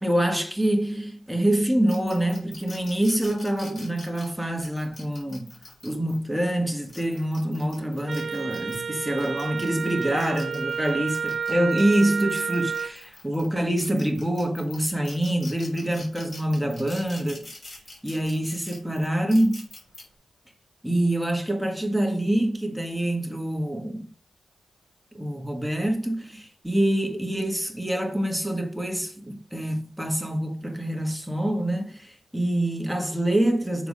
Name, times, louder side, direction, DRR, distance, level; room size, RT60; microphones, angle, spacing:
voice 1, 0.0-17.5 18.0-19.6 20.8-24.1 25.1-33.9, right 1 dB, ahead, 1.7 m, -26 dB
sound 1, 1.9-6.2 6.7-8.8 9.2-13.5 13.8-20.0, left 2 dB, 40° left, 4.0 m, -45 dB
Wind instrument woodwind instrument, 8.1-13.0, right 6 dB, 50° right, 0.7 m, -30 dB
6.8 x 4.7 x 5.4 m
cardioid pair, 80°, 0 cm